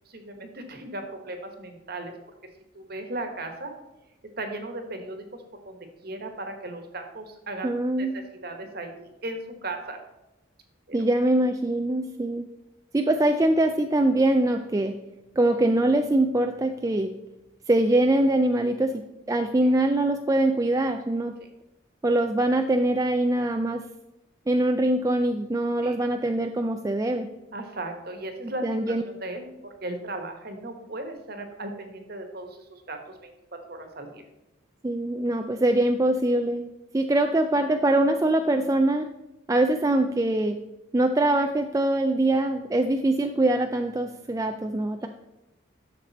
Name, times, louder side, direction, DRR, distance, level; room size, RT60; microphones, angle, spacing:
voice 1, 0.1-2.1 2.7-3.7 4.4-7.7 8.0-10.0 10.9-11.0 19.6-19.7 25.8-26.0 27.5-34.2, right 2 dB, 50° right, 5 dB, 1.4 m, -37 dB
voice 2, 7.6-8.1 10.9-12.5 12.9-15.0 15.4-17.2 17.7-19.0 19.3-21.3 22.0-23.8 24.5-27.3 28.4-29.0 34.8-36.7 36.9-39.1 39.5-40.6 40.9-45.1, right 1 dB, 15° right, 6 dB, 0.3 m, -23 dB
11.5 x 6.7 x 4.1 m, 0.96 s
head